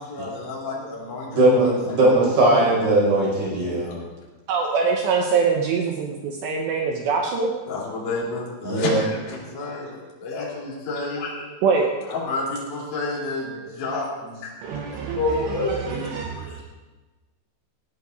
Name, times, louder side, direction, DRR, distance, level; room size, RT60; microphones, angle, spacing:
voice 1, 0.0-2.0 3.6-4.0 7.7-11.4 12.1-14.8 15.1-16.6, left 3 dB, 45° left, -6 dB, 4.6 m, -30 dB
voice 2, 1.3-3.9 8.6-9.0, right 2 dB, 60° right, -5 dB, 7.9 m, -19 dB
voice 3, 4.5-7.5 11.6-11.9 13.5-13.6 14.6-16.6, right 5 dB, 75° right, 0 dB, 2.9 m, -24 dB
18.5 x 16.5 x 2.7 m, 1.2 s
omnidirectional pair, 5.7 m